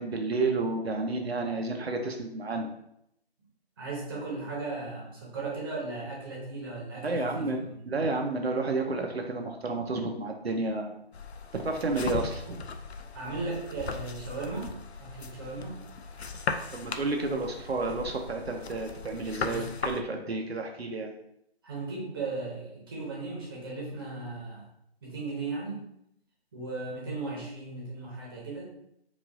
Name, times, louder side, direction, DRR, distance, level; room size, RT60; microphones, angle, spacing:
voice 1, 0.0-2.7 7.0-10.9 11.5-12.7 16.7-21.1, right 3 dB, 75° right, 3 dB, 0.7 m, -31 dB
voice 2, 3.8-7.8 13.1-14.7 15.0-15.8 19.4-19.7 21.6-24.7 25.0-25.9 26.5-28.6, right 3 dB, 20° right, -5 dB, 0.9 m, -36 dB
sound 1, 11.1-20.0, left 4 dB, 85° left, 0.5 m, -38 dB
4.8 x 2.5 x 2.6 m, 0.77 s
figure-of-eight pair, 155°, 31 cm